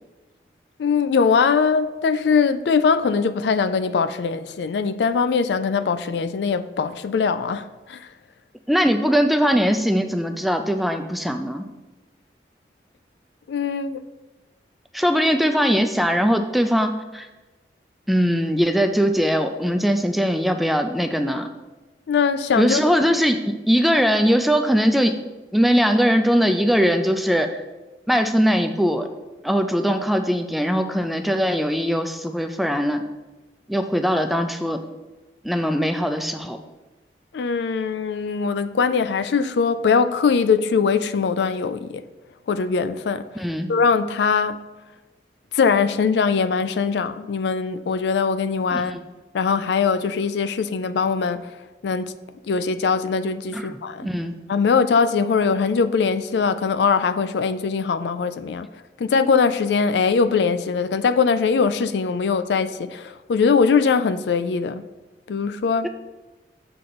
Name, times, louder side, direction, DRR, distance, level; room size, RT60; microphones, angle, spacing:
voice 1, 0.8-8.1 13.5-14.1 22.1-23.0 37.3-42.0 42.5-43.4 43.7-44.6 45.5-48.9 49.3-51.5 51.8-52.1 52.5-54.1 54.5-58.7 59.0-64.8 65.3-65.9, left 5 dB, 75° left, 0.4 m, -21 dB
voice 2, 8.7-11.7 14.9-17.3 18.1-21.5 22.6-25.1 25.5-27.6 28.1-29.1 29.4-33.0 33.7-34.8 35.4-36.6 43.4-43.7 48.7-49.0 53.5-53.7 54.0-54.4, equal, ahead, 0.3 m, -20 dB
6.8 x 3.7 x 5.9 m
head